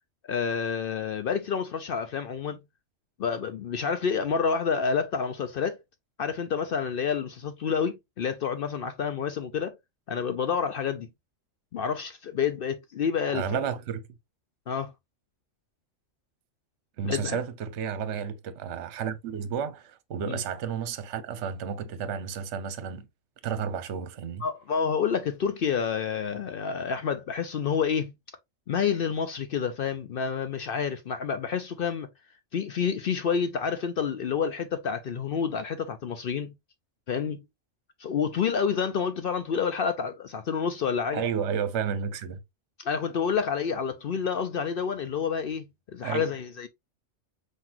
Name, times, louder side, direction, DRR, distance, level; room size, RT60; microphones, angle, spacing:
voice 1, 0.3-2.6 3.2-5.8 6.2-9.7 10.1-11.1 11.7-13.6 14.7-14.9 17.0-17.4 20.2-20.4 24.4-28.1 28.7-32.1 32.5-36.5 37.1-37.4 38.0-41.2 42.8-45.6 45.9-46.7, left 6 dB, 60° left, 0.6 m, -29 dB
voice 2, 13.3-14.0 17.0-23.1 23.4-24.4 41.1-42.4 46.0-46.3, right 7 dB, 65° right, 1.0 m, -32 dB
5.8 x 2.7 x 2.9 m
omnidirectional pair, 1.3 m